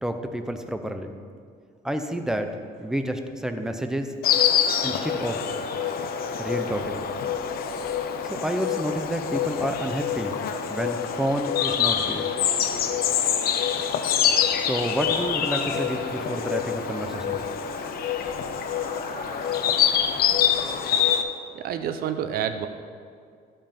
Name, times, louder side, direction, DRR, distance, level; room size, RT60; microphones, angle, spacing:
voice 1, 0.0-1.2 1.8-4.1 4.8-5.4 6.4-7.0 8.2-10.3 10.7-12.2 14.6-17.4, equal, 5° right, 6 dB, 0.7 m, -29 dB
Insect, 4.2-21.2, left 8 dB, 65° left, 0.7 m, -26 dB
sound 1, 4.6-20.8, left 2 dB, 45° left, 1.6 m, -40 dB
voice 2, 21.5-22.7, right 9 dB, 65° right, 9 dB, 0.7 m, -28 dB
12.5 x 5.6 x 5.3 m, 2.2 s
cardioid pair, 110°, 17 cm